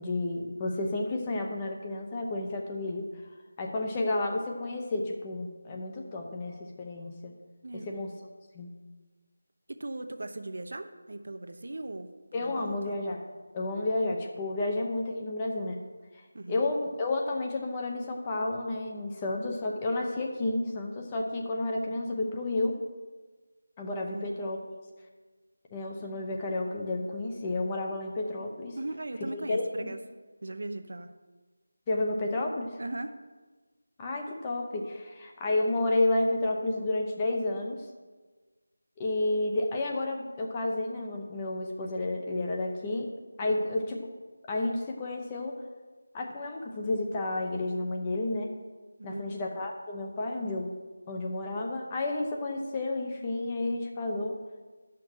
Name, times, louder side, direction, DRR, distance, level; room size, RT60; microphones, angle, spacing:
voice 1, 0.0-3.1 3.6-7.3 7.7-8.1 8.5-8.7 12.3-13.2 13.5-15.8 16.5-22.8 23.8-24.6 25.7-28.8 29.3-29.9 31.9-32.7 34.0-37.8 39.0-43.1 43.4-44.0 44.5-45.6 46.1-48.5 49.0-50.7 51.1-54.4, left 2 dB, 15° left, 0 dB, 0.8 m, -31 dB
voice 2, 9.7-12.9 16.3-16.6 24.0-24.3 28.8-30.0 30.4-31.1 32.8-33.1 43.4-43.6 49.0-49.4, right 2 dB, 60° right, 7 dB, 0.8 m, -38 dB
11.0 x 5.9 x 6.3 m, 1.3 s
figure-of-eight pair, 175°, 0 cm